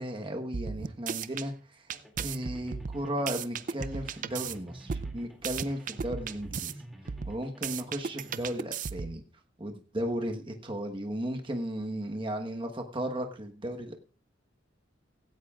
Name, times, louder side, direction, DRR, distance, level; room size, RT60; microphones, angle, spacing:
voice 1, 0.0-1.9 2.2-6.7 7.2-9.2 9.6-13.9, equal, 25° right, 3 dB, 1.3 m, -35 dB
sound 1, 0.5-1.5 1.9-4.5 4.9-6.7 7.1-9.2, right 6 dB, 45° right, 0.5 m, -35 dB
sound 2, 1.9-8.5, equal, ahead, 2.5 m, -51 dB
16.5 x 16.0 x 2.4 m, 0.37 s
head